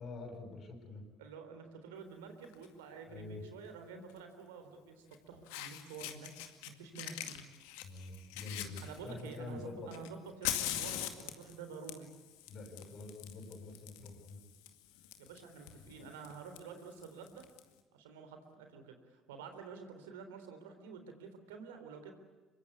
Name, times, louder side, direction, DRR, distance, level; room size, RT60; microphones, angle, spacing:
voice 1, 0.0-1.0 3.1-3.4 7.8-9.9 12.5-14.4 15.0-15.1, left 3 dB, 55° left, 3 dB, 7.1 m, -46 dB
voice 2, 1.2-6.3 6.7-7.5 8.8-12.1 15.2-17.4 17.9-22.1, right 5 dB, 85° right, 7 dB, 3.7 m, -49 dB
Fire, 2.4-2.7 4.1-4.2 5.1-5.2 5.5-6.7 7.0-9.4 9.9-17.6, left 12 dB, 80° left, 2.2 m, -43 dB
24.5 x 23.5 x 8.4 m, 1.3 s
hypercardioid pair, 65°, 0 cm